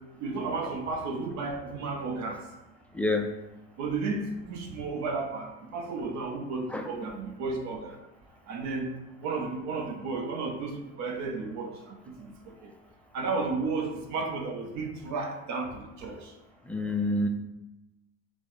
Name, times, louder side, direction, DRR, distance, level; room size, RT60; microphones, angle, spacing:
voice 1, 0.2-2.4 3.8-7.9 8.5-8.9 9.2-12.3 12.6-12.7 13.1-16.3, right 3 dB, 55° right, 2 dB, 0.8 m, -33 dB
voice 2, 16.7-17.3, left 2 dB, 5° left, 3 dB, 0.3 m, -27 dB
5.2 x 2.1 x 3.1 m, 0.96 s
supercardioid pair, 95°, 33 cm